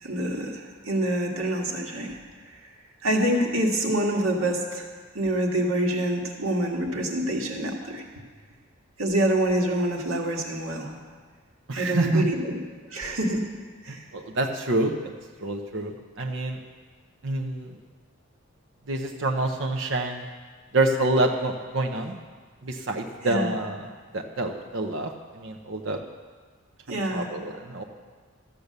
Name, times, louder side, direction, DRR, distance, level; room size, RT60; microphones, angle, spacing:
voice 1, 0.0-2.2 2.5-2.6 3.0-4.9 5.1-8.0 9.0-10.9 11.7-12.6 12.9-13.5 13.8-14.0 23.2-23.5 26.9-27.3, right 1 dB, 80° right, 1 dB, 1.8 m, -26 dB
voice 2, 11.7-12.2 13.9-14.9 15.4-16.6 17.2-17.8 18.9-20.3 20.7-22.2 22.6-23.8 24.1-26.0 26.9-27.8, right 2 dB, 60° right, 2 dB, 0.8 m, -27 dB
13.5 x 8.6 x 6.7 m, 1.5 s
head